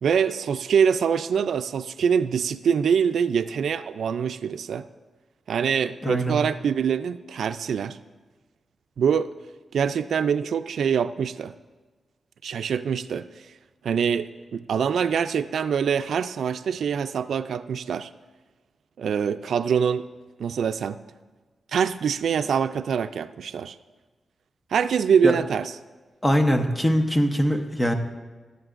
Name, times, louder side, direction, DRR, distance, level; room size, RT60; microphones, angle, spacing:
voice 1, 0.0-4.9 5.5-8.0 9.0-9.3 9.7-11.5 12.4-13.3 13.8-18.1 19.0-20.1 20.4-21.0 21.7-23.8 24.7-25.7, right 7 dB, 80° right, 11 dB, 0.3 m, -24 dB
voice 2, 6.0-6.4 25.2-25.3 26.2-27.9, equal, 10° left, 5 dB, 0.8 m, -22 dB
17.0 x 11.5 x 2.5 m, 1.3 s
wide cardioid pair, 170°, 0 cm